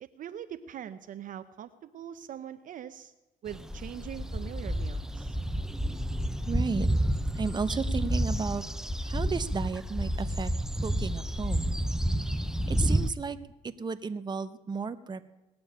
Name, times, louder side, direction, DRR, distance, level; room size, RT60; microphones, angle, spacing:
voice 1, 0.0-3.1 3.4-5.4, right 9 dB, 50° right, 10 dB, 0.7 m, -42 dB
sound 1, 3.5-13.1, equal, 5° right, 0.6 m, -30 dB
voice 2, 6.5-7.0 7.3-8.6 9.0-10.5 10.8-11.8 12.2-13.4 13.6-15.3, right 5 dB, 25° right, 11 dB, 0.9 m, -34 dB
19.0 x 7.0 x 9.9 m, 1.1 s
cardioid pair, 110°, 17 cm